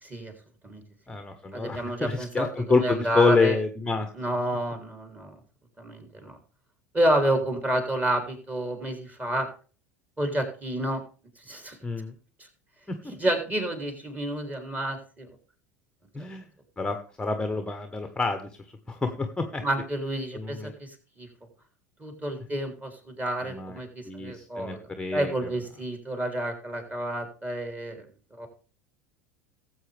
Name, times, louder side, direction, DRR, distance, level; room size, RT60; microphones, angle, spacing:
voice 1, 0.0-0.3 0.6-0.8 1.5-3.6 4.1-5.4 5.8-6.4 6.9-9.5 10.2-11.0 11.4-11.8 13.1-15.3 16.2-16.3 19.6-21.3 22.0-24.8 25.1-28.1 28.3-28.5, right 1 dB, 20° right, 5 dB, 3.3 m, -29 dB
voice 2, 1.1-4.1 11.8-12.1 12.9-13.1 16.1-16.4 16.8-18.5 18.9-19.6 20.3-20.7 23.4-23.8 24.1-25.3, left 4 dB, 10° left, 7 dB, 1.2 m, -27 dB
19.0 x 7.9 x 3.5 m, 0.38 s
figure-of-eight pair, 75°, 9 cm